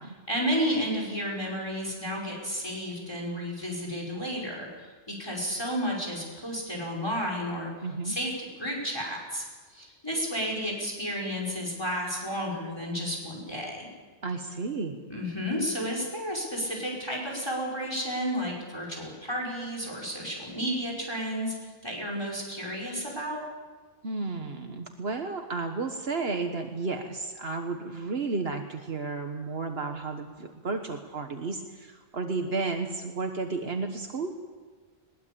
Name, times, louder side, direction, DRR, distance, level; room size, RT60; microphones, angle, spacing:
voice 1, 0.3-7.7 8.0-13.9 15.1-23.4, equal, 25° left, -1 dB, 5.4 m, -32 dB
voice 2, 7.8-8.1 14.2-15.1 24.0-34.3, right 3 dB, 70° right, 5 dB, 1.6 m, -32 dB
21.5 x 20.0 x 8.6 m, 1.4 s
omnidirectional pair, 1.1 m